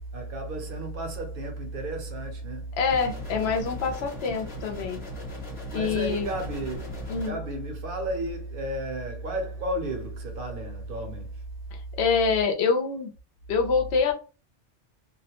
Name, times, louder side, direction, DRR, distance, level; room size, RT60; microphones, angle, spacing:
voice 1, 0.1-2.7 5.7-11.4, right 1 dB, 55° right, 0.7 m, -33 dB
voice 2, 2.7-5.0 5.7-6.3 7.1-7.4 11.7-13.1 13.5-14.1, left 5 dB, 70° left, 0.8 m, -26 dB
sound 1, 2.9-7.3, left 1 dB, 35° left, 1.0 m, -39 dB
2.4 x 2.0 x 2.8 m
omnidirectional pair, 1.2 m